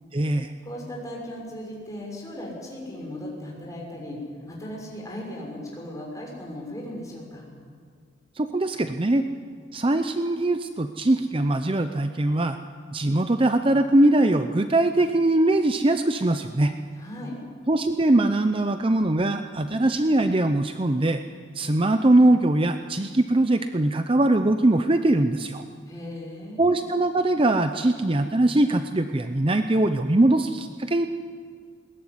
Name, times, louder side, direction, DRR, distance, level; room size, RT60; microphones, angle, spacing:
voice 1, 0.1-0.5 8.4-9.2 9.7-12.6 12.9-16.7 17.7-21.2 21.5-25.6 26.6-31.1, right 1 dB, 25° right, 8 dB, 0.7 m, -21 dB
voice 2, 0.6-4.2 4.5-7.5 17.0-17.4 25.9-26.7, left 1 dB, 15° left, -2 dB, 6.4 m, -37 dB
21.0 x 19.0 x 9.7 m, 2.1 s
head